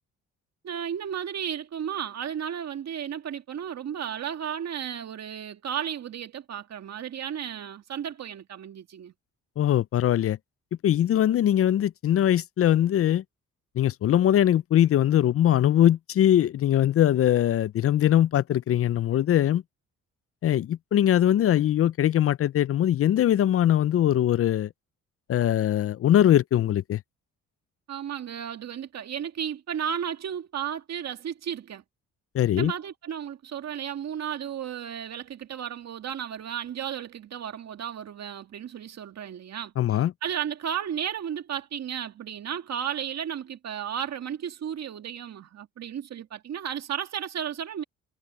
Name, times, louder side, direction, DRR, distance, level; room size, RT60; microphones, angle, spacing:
voice 1, 0.6-9.1 27.9-31.8 32.5-47.8, right 9 dB, 60° right, 2.0 m, -34 dB
voice 2, 9.6-10.4 10.8-13.2 13.8-19.6 20.4-24.7 25.3-27.0 32.3-32.7 39.8-40.1, left 11 dB, 50° left, 0.5 m, -21 dB
cardioid pair, 90°, 30 cm